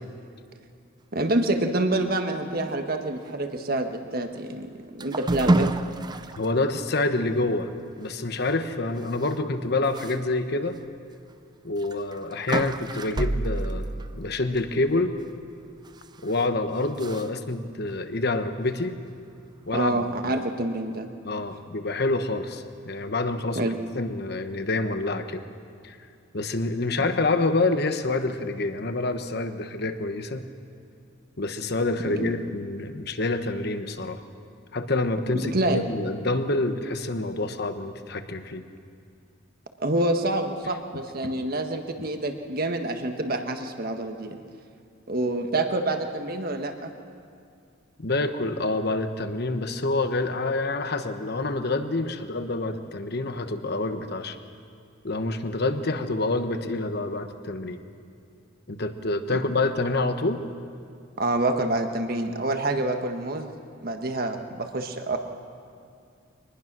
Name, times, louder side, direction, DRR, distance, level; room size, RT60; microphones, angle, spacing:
voice 1, 1.1-5.7 19.7-21.1 23.5-23.8 27.0-27.1 32.2-32.4 35.3-35.9 39.8-44.4 45.1-46.9 59.3-59.4 61.2-63.6 63.8-65.2, right 2 dB, 50° right, 6 dB, 1.4 m, -27 dB
sound 1, 5.0-6.5 7.0-7.1 7.5-7.6 9.2-9.3 9.9-10.2 10.7-10.8 11.8-15.0 15.9-16.4 17.0-17.3, right 2 dB, 20° right, 0.5 m, -28 dB
voice 2, 6.4-7.7 8.0-10.8 11.6-13.9 14.1-15.1 16.2-19.0 19.7-20.1 21.2-25.4 25.8-26.0 26.3-30.5 31.4-34.2 34.7-38.6 48.0-54.4 55.0-57.8 58.7-60.4, left 2 dB, 55° left, 8 dB, 1.2 m, -27 dB
23.5 x 20.0 x 6.1 m, 2.4 s
head